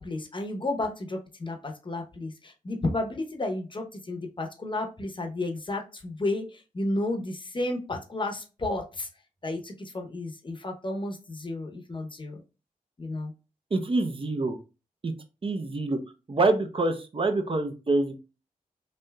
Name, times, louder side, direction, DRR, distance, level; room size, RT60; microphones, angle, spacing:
voice 1, 0.0-6.4 6.7-9.1 9.4-12.4 13.0-13.3, left 2 dB, 35° left, 2 dB, 0.7 m, -32 dB
voice 2, 13.7-14.6 15.0-15.1 15.4-16.0 16.3-18.1, right 2 dB, 40° right, 6 dB, 0.6 m, -26 dB
3.3 x 2.6 x 2.2 m, 0.31 s
cardioid pair, 45°, 15 cm